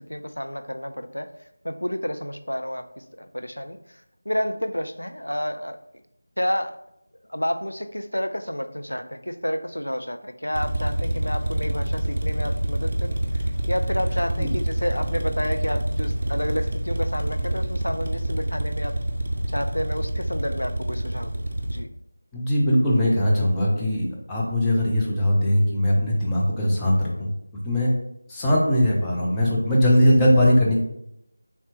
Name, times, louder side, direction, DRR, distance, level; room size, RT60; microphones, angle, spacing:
voice 1, 0.1-1.3 1.6-3.8 4.3-5.8 6.4-6.8 7.3-18.9 19.5-21.9, equal, 90° left, 8 dB, 0.3 m, -30 dB
sound 1, 10.5-21.8, right 1 dB, 50° right, 0.4 m, -27 dB
voice 2, 22.3-27.3 27.6-27.9 28.3-30.8, equal, 5° left, -6 dB, 0.4 m, -20 dB
3.3 x 2.7 x 2.8 m, 0.78 s
figure-of-eight pair, 170°, 0 cm